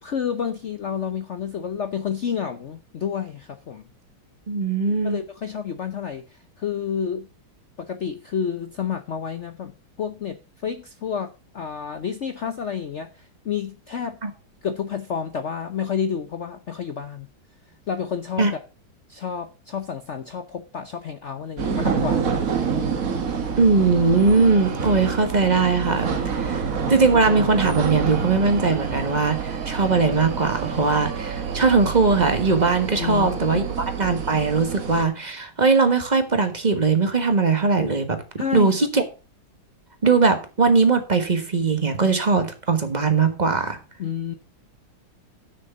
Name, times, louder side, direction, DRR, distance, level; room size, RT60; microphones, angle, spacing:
voice 1, 0.0-3.8 5.0-7.3 7.8-14.2 14.6-17.3 17.9-18.6 19.1-22.6 26.4-26.6 33.0-33.7 38.4-38.8 44.0-44.3, left 7 dB, 65° left, 0.7 m, -30 dB
voice 2, 4.5-5.2 14.2-14.3 18.4-18.5 23.6-33.6 34.0-38.2 38.5-39.0 40.0-43.8, right 4 dB, 25° right, 1.3 m, -20 dB
sound 1, 21.6-35.0, right 6 dB, 45° right, 1.6 m, -27 dB
8.0 x 6.4 x 6.7 m
omnidirectional pair, 2.2 m